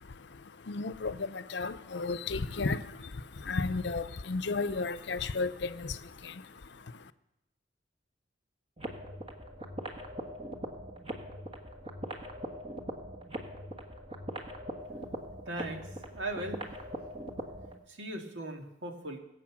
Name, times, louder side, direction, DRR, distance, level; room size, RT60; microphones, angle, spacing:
voice 1, 0.0-7.1, left 3 dB, 65° left, 0.6 m, -34 dB
sound 1, 8.8-17.8, right 1 dB, 30° right, 1.4 m, -41 dB
voice 2, 15.5-16.6 17.9-19.2, right 1 dB, 85° right, 2.2 m, -38 dB
22.5 x 8.1 x 6.1 m
head